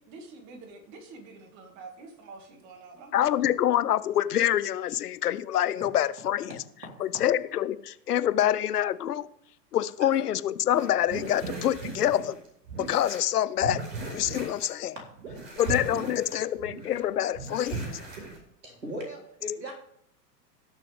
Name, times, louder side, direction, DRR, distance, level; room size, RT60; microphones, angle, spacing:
voice 1, 0.0-3.4, right 3 dB, 35° right, 2.6 m, -47 dB
voice 2, 3.1-6.6 7.0-9.3 9.7-12.3 12.8-13.8 14.1-14.9 15.5-17.9, left 11 dB, 70° left, 0.8 m, -26 dB
sound 1, 10.7-13.2 13.6-14.7 15.0-17.0 17.3-18.4, right 3 dB, 65° right, 5.2 m, -37 dB
voice 3, 18.6-19.7, left 1 dB, 85° right, 3.8 m, -39 dB
17.5 x 6.8 x 3.6 m
figure-of-eight pair, 100°, 49 cm